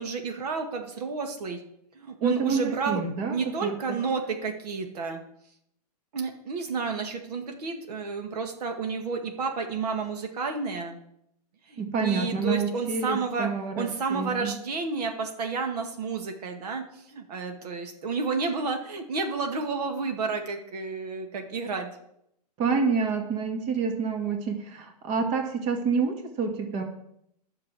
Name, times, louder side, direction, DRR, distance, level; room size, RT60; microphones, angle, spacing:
voice 1, 0.0-1.6 1.9-3.0 3.3-5.2 6.1-11.0 11.7-13.5 13.7-21.9, right 4 dB, 70° right, 4 dB, 1.9 m, -31 dB
voice 2, 2.2-3.4 3.6-3.8 11.8-14.5 22.6-26.8, right 5 dB, 35° right, 4 dB, 2.1 m, -28 dB
10.0 x 6.8 x 8.2 m, 0.76 s
hypercardioid pair, 140°, 21 cm